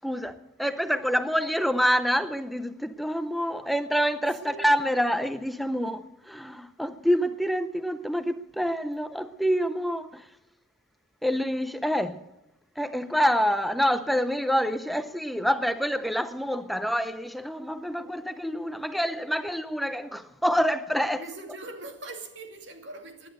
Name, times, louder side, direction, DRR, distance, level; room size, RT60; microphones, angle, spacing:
voice 1, 0.0-10.2 11.2-12.2 12.8-21.2, equal, ahead, 0.5 m, -27 dB
voice 2, 21.1-23.3, right 2 dB, 80° right, 2.4 m, -41 dB
17.0 x 10.5 x 6.6 m
head